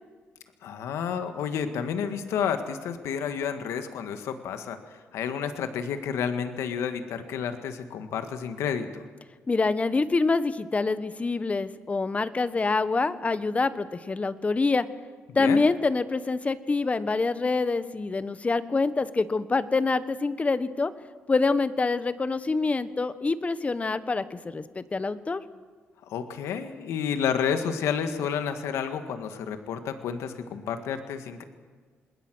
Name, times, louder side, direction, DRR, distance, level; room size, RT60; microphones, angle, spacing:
voice 1, 0.6-9.0 15.4-15.6 26.0-31.4, left 7 dB, 85° left, 8 dB, 1.8 m, -30 dB
voice 2, 9.5-14.8 15.3-20.9 21.3-25.4, left 3 dB, 30° left, 13 dB, 1.3 m, -26 dB
27.0 x 21.0 x 6.4 m, 1.5 s
cardioid pair, 85°, 5 cm